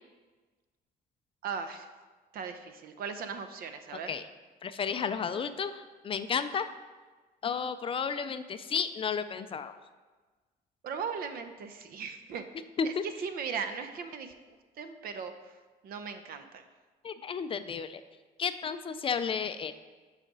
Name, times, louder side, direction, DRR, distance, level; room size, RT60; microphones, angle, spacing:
voice 1, 1.4-1.9 2.3-4.1 10.8-12.4 13.2-15.5 15.8-16.6, right 6 dB, 60° right, 8 dB, 0.7 m, -38 dB
voice 2, 4.6-6.7 7.4-9.8 12.8-13.0 17.0-18.0 18.4-19.7, left 6 dB, 35° left, 11 dB, 0.3 m, -32 dB
6.4 x 4.9 x 5.3 m, 1.3 s
cardioid pair, 110°, 17 cm